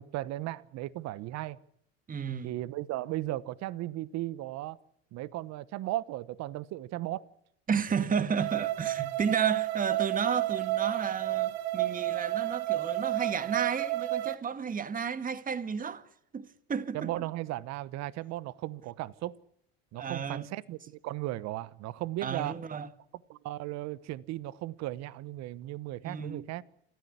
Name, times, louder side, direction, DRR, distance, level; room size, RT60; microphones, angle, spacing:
voice 1, 0.0-1.6 2.4-4.8 5.1-7.2 16.9-19.3 19.9-22.5 23.3-26.6, right 16 dB, 55° right, 1.2 m, -36 dB
voice 2, 2.1-2.6 7.7-16.1 16.3-17.2 19.9-20.5 22.2-22.9 26.1-26.5, right 6 dB, 25° right, 1.8 m, -32 dB
sound 1, 8.4-14.3, right 16 dB, 85° right, 1.6 m, -31 dB
27.5 x 14.0 x 9.8 m
supercardioid pair, 95°, 31 cm